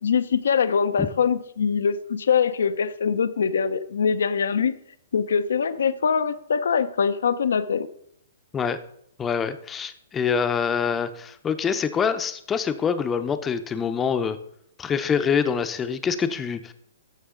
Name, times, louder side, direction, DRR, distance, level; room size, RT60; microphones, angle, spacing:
voice 1, 0.0-4.7 5.1-7.9, left 6 dB, 80° left, 13 dB, 0.6 m, -23 dB
voice 2, 9.2-14.4 14.8-16.7, left 6 dB, 15° left, 10 dB, 0.6 m, -25 dB
13.0 x 6.2 x 3.8 m, 0.73 s
hypercardioid pair, 145°, 0 cm